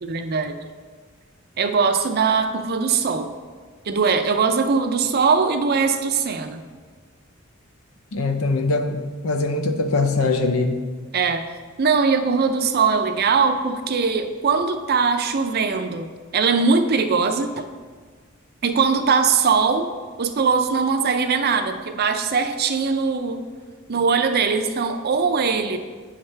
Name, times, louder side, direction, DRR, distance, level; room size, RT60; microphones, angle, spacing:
voice 1, 0.0-0.6 1.6-3.3 3.9-6.6 11.1-11.5 11.8-16.1 16.3-17.7 18.6-19.9 20.2-23.4 23.9-25.8, right 5 dB, 50° right, 7 dB, 0.5 m, -21 dB
voice 2, 8.1-9.0 9.2-10.8, left 3 dB, 80° left, 6 dB, 0.7 m, -22 dB
9.3 x 5.8 x 3.3 m, 1.5 s
head